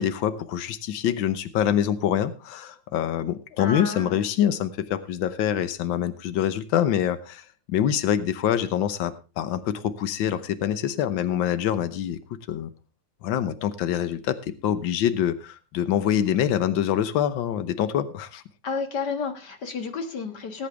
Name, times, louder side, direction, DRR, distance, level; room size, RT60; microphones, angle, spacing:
voice 1, 0.0-12.7 13.2-18.4, left 10 dB, 75° left, 12 dB, 1.6 m, -25 dB
voice 2, 3.6-4.2 18.6-20.7, left 5 dB, 55° left, 6 dB, 2.0 m, -31 dB
19.0 x 8.3 x 3.4 m, 0.32 s
omnidirectional pair, 2.2 m